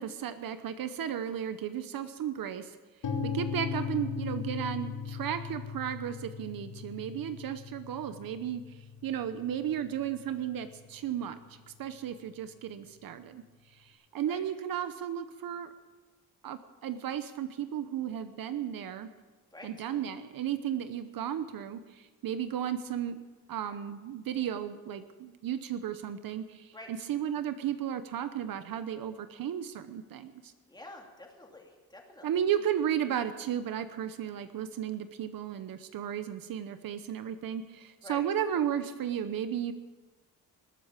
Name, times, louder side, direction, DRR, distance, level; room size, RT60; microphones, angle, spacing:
voice 1, 0.0-2.8 3.2-11.4 11.7-13.4 13.8-15.7 16.4-19.1 19.6-23.2 23.5-30.5 32.2-39.7, right 9 dB, 65° right, 11 dB, 0.9 m, -34 dB
sound 1, 3.0-10.9, left 6 dB, 60° left, 2.1 m, -38 dB
voice 2, 30.7-32.4 38.0-38.2, left 1 dB, 10° left, 1 dB, 2.6 m, -48 dB
20.0 x 8.2 x 7.4 m, 1.3 s
cardioid pair, 135°, 38 cm